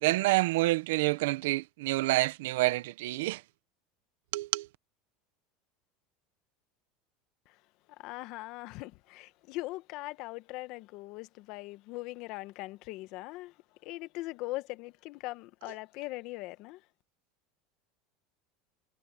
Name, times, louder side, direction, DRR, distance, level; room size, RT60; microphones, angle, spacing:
voice 1, 0.0-3.4 4.3-4.7, right 19 dB, 80° right, 0.9 m, -28 dB
voice 2, 8.0-13.5 13.8-16.8, left 19 dB, 60° left, 1.2 m, -40 dB
supercardioid pair, 130°, 0 cm